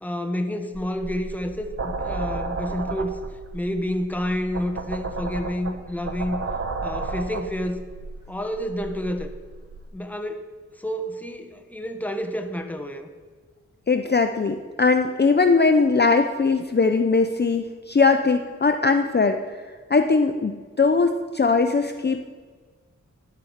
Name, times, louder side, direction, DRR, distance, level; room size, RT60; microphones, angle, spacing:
voice 1, 0.0-3.2 3.5-6.4 6.8-7.8 8.3-9.3 9.9-10.5 10.8-13.1, equal, 5° left, 6 dB, 1.1 m, -29 dB
sound 1, 0.7-9.9, right 3 dB, 50° right, 1.0 m, -33 dB
voice 2, 13.9-19.4 19.9-22.2, left 4 dB, 35° left, 7 dB, 0.6 m, -20 dB
11.0 x 7.5 x 5.8 m, 1.5 s
cardioid pair, 50°, 29 cm